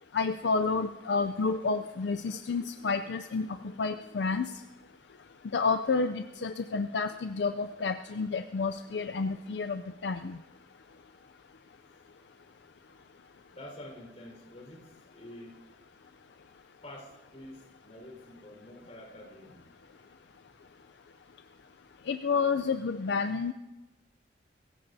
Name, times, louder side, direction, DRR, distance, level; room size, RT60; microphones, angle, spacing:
voice 1, 0.1-4.5 5.5-10.4 22.1-23.5, left 4 dB, 65° left, 8 dB, 0.4 m, -30 dB
voice 2, 13.5-15.6 16.8-19.7, left 1 dB, 35° left, 0 dB, 4.5 m, -48 dB
23.0 x 15.5 x 2.7 m, 1.1 s
head